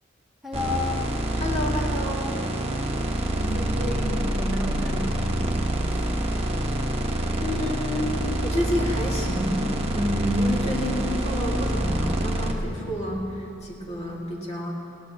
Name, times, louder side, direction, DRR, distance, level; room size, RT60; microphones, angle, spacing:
voice 1, 0.4-1.0 3.3-6.0, left 1 dB, ahead, -6 dB, 2.0 m, -32 dB
sound 1, 0.5-12.5, right 1 dB, 30° right, 1.1 m, -26 dB
voice 2, 1.4-2.4 7.4-14.7, equal, 35° left, -4 dB, 2.1 m, -29 dB
21.0 x 17.5 x 2.9 m, 2.6 s
head